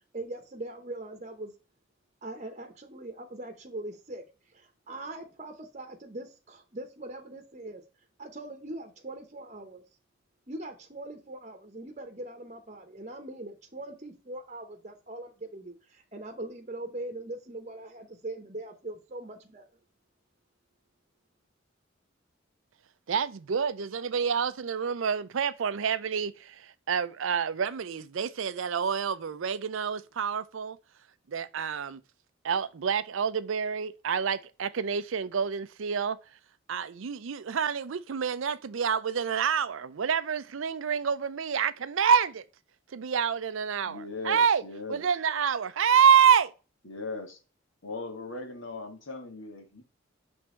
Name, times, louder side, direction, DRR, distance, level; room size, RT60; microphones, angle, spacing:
voice 1, 0.1-1.5 2.2-4.2 4.5-7.8 8.2-9.8 10.5-19.7, right 2 dB, 35° right, 0.9 m, -41 dB
voice 2, 23.1-30.8 31.3-32.0 32.4-36.2 36.7-42.4 42.9-44.6 44.9-46.5, right 7 dB, 70° right, 0.5 m, -27 dB
voice 3, 43.8-45.1 46.8-47.4 47.8-49.8, left 3 dB, 70° left, 1.9 m, -39 dB
6.2 x 3.5 x 4.3 m
head